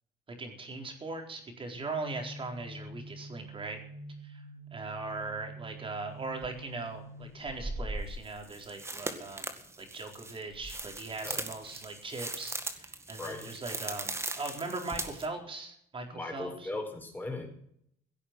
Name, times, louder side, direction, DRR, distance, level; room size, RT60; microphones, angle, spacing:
voice 1, 0.4-3.8 4.2-4.4 4.7-16.7, right 3 dB, 30° right, 3 dB, 4.3 m, -40 dB
sound 1, 1.7-7.3, right 2 dB, 80° right, 4.6 m, -47 dB
sound 2, 6.4-6.5 7.4-15.3, right 2 dB, 15° right, 2.0 m, -39 dB
voice 2, 13.2-13.5 16.1-17.5, left 2 dB, 10° left, 3 dB, 4.9 m, -38 dB
17.0 x 8.5 x 7.6 m, 0.70 s
cardioid pair, 110°, 17 cm